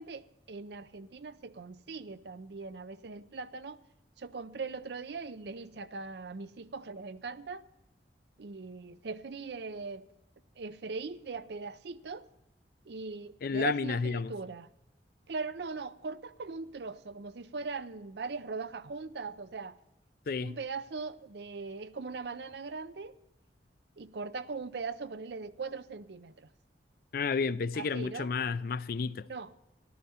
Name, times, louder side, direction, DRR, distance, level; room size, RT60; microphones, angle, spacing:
voice 1, 0.0-3.8 4.2-7.7 8.4-10.1 10.6-12.3 12.9-14.7 15.3-19.8 20.4-23.2 24.0-26.5 27.7-28.3 29.3-29.5, right 4 dB, 65° right, 0.5 m, -40 dB
voice 2, 13.4-14.3 20.3-20.6 27.1-29.3, left 5 dB, 55° left, 0.4 m, -31 dB
14.0 x 12.5 x 4.2 m
head